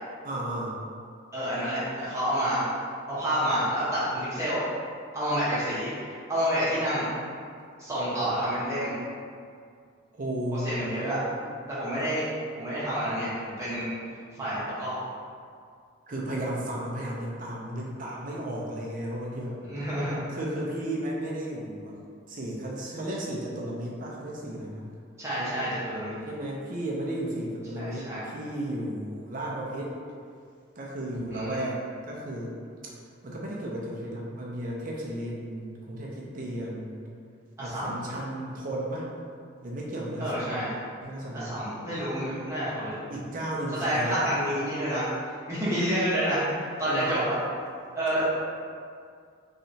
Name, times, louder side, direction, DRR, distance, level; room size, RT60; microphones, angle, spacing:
voice 1, 0.2-0.8 7.7-7.8 8.1-8.4 10.1-11.5 16.1-19.6 20.3-22.0 22.3-24.8 26.3-29.9 30.8-32.6 32.8-32.9 33.2-37.0 37.6-39.1 39.6-40.6 41.0-41.6 43.1-44.2 46.9-47.3 48.1-48.3, right 1 dB, 40° right, -4 dB, 0.5 m, -34 dB
voice 2, 1.3-2.6 3.1-4.6 5.1-7.1 7.8-8.9 10.5-11.2 11.7-12.3 12.6-13.9 14.3-15.0 19.6-20.2 25.2-26.2 27.8-28.2 31.3-31.7 37.6-38.0 40.2-40.7 41.3-42.9 43.8-45.1 45.5-47.4 47.9-48.3, equal, 15° right, -11 dB, 1.0 m, -29 dB
3.2 x 2.8 x 2.7 m, 2.2 s
head